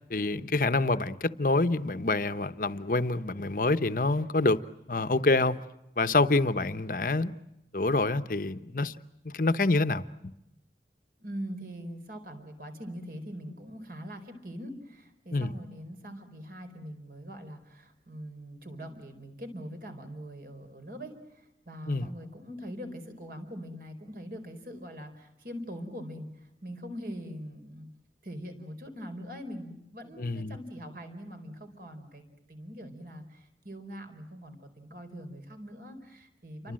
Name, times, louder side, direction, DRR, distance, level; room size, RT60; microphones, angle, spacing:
voice 1, 0.1-4.6 4.9-5.6 6.0-7.4 7.7-8.9 9.2-10.0 15.3-15.5 21.9-22.1 30.2-30.6 36.6-36.7, left 2 dB, 50° left, 1.0 m, -26 dB
voice 2, 11.2-27.9 28.2-36.7, equal, 55° right, 4.5 m, -42 dB
29.5 x 24.5 x 7.6 m
head